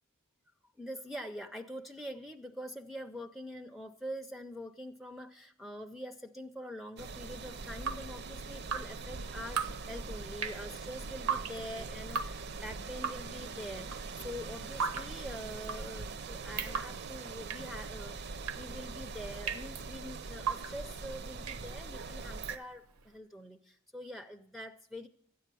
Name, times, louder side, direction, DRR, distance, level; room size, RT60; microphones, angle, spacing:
voice 1, 0.8-25.1, equal, ahead, 8 dB, 0.4 m, -45 dB
sound 1, 7.0-22.6, right 4 dB, 50° right, 0.5 m, -42 dB
Drip, 7.6-23.1, right 6 dB, 85° right, 0.8 m, -40 dB
13.0 x 9.2 x 6.8 m, 0.67 s
head